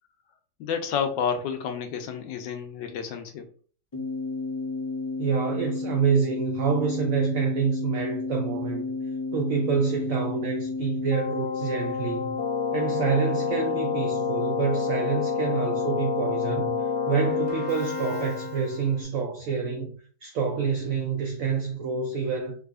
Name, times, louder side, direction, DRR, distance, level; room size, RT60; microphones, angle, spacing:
voice 1, 0.6-3.5, left 7 dB, 85° left, 1.3 m, -30 dB
Keyboard (musical), 3.9-19.0, left 5 dB, 30° left, 0.4 m, -29 dB
voice 2, 5.2-8.9 9.3-12.3 12.7-16.7 17.1-19.9 20.2-22.6, right 6 dB, 85° right, 0.7 m, -27 dB
3.7 x 2.7 x 2.4 m
omnidirectional pair, 2.0 m